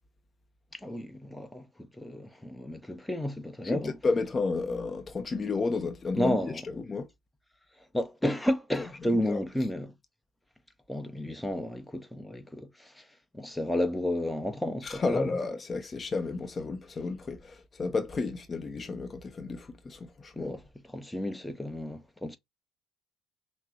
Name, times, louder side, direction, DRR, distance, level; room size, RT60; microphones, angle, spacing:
voice 1, 0.7-4.1 6.2-6.7 7.9-9.9 10.9-13.1 13.3-15.4 20.4-22.4, left 1 dB, 5° left, 0.9 m, -32 dB
voice 2, 3.6-6.4 6.9-7.1 9.3-9.4 14.8-20.6, left 4 dB, 35° left, 0.7 m, -32 dB
5.8 x 2.1 x 2.8 m
hypercardioid pair, 60°, 0 cm